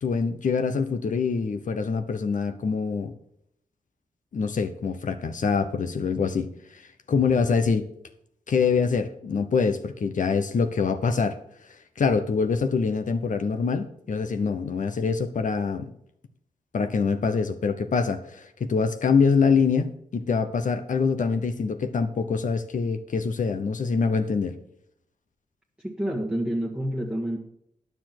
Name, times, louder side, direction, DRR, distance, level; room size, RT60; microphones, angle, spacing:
voice 1, 0.0-3.1 4.3-7.9 8.5-11.4 12.0-15.9 16.7-24.6, left 5 dB, 65° left, 7 dB, 0.9 m, -25 dB
voice 2, 25.8-27.4, right 1 dB, 5° right, -2 dB, 1.6 m, -28 dB
10.0 x 6.9 x 6.0 m, 0.74 s
cardioid pair, 80°, 14 cm